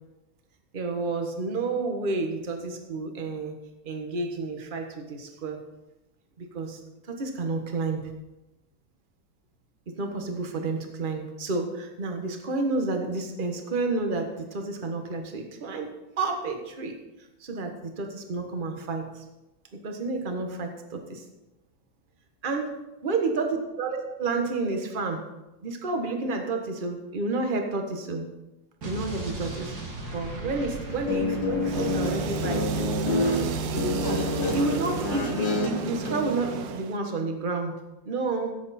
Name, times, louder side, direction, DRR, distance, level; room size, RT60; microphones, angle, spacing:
voice 1, 0.7-3.6 3.8-5.6 6.4-6.8 7.1-8.0 9.9-16.9 17.4-19.2 19.7-21.2 22.4-22.7 23.0-25.2 25.6-28.3 28.8-29.7 30.1-32.7 33.7-37.7 38.0-38.5, right 3 dB, 30° right, 4 dB, 1.3 m, -30 dB
Explosion, 28.8-33.6, right 2 dB, 55° right, 2.3 m, -38 dB
Guitar, 30.9-36.2, left 2 dB, 80° left, 2.8 m, -28 dB
sound 1, 31.6-37.0, right 5 dB, 75° right, 1.5 m, -32 dB
15.5 x 7.9 x 4.3 m, 0.97 s
omnidirectional pair, 2.0 m